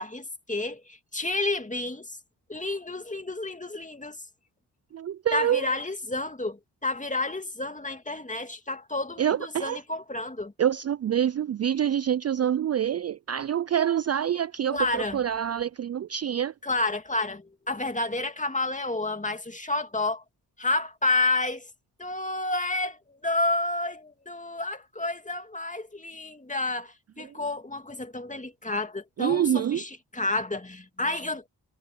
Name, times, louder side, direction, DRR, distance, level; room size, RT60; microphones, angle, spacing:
voice 1, 0.0-2.2 2.5-4.2 5.3-10.5 14.7-15.2 16.6-20.2 20.6-21.7 22.0-31.5, left 2 dB, 15° left, 2.4 m, -30 dB
voice 2, 4.9-5.7 9.2-9.8 10.6-16.5 29.2-29.8, right 9 dB, 40° right, 0.4 m, -26 dB
supercardioid pair, 45°, 42 cm